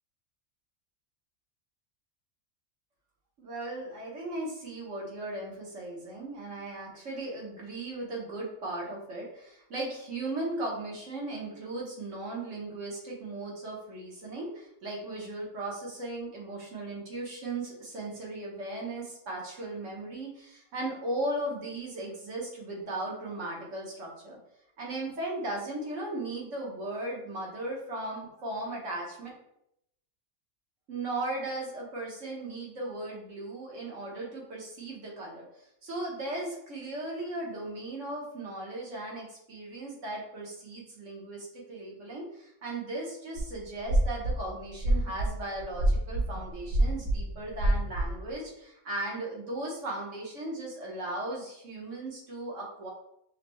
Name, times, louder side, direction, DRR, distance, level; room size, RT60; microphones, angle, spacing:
voice 1, 3.4-24.4 24.8-29.3 30.9-52.9, right 2 dB, 65° right, -3 dB, 1.5 m, -37 dB
sound 1, 43.4-43.5 43.8-44.4 44.8-48.3, right 1 dB, 85° right, 1.7 m, -27 dB
5.6 x 2.3 x 3.1 m, 0.78 s
omnidirectional pair, 1.4 m